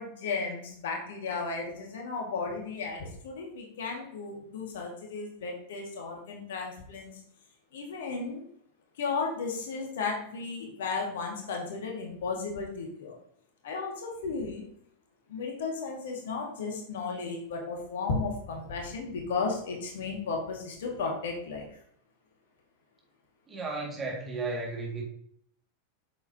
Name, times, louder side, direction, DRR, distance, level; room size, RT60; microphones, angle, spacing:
voice 1, 0.0-7.1 7.7-8.4 9.0-13.2 13.6-14.7 15.3-21.7, left 4 dB, 60° left, 1 dB, 2.0 m, -34 dB
voice 2, 23.5-25.0, right 3 dB, 20° right, -1 dB, 2.2 m, -34 dB
8.0 x 7.0 x 2.9 m, 0.67 s
figure-of-eight pair, 90°, 0 cm